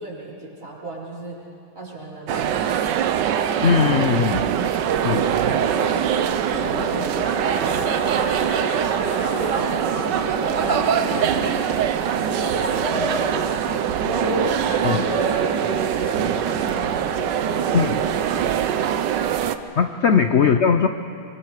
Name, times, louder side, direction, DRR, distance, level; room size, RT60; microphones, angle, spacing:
voice 1, 0.0-1.4 1.7-3.0 4.2-8.5 9.1-13.5 13.8-18.5 20.1-20.2, right 2 dB, 40° right, -6 dB, 4.8 m, -34 dB
sound 1, 2.3-19.6, right 9 dB, 70° right, 1.4 m, -23 dB
voice 2, 3.6-4.4 5.0-5.3 14.8-15.1 17.7-18.0 19.8-20.9, left 6 dB, 75° left, 7 dB, 0.6 m, -19 dB
sound 2, 6.5-11.7, left 1 dB, 40° left, 2.4 m, -33 dB
sound 3, 6.5-18.5, left 1 dB, 25° left, 0.8 m, -34 dB
25.0 x 23.0 x 4.9 m, 2.6 s
omnidirectional pair, 2.1 m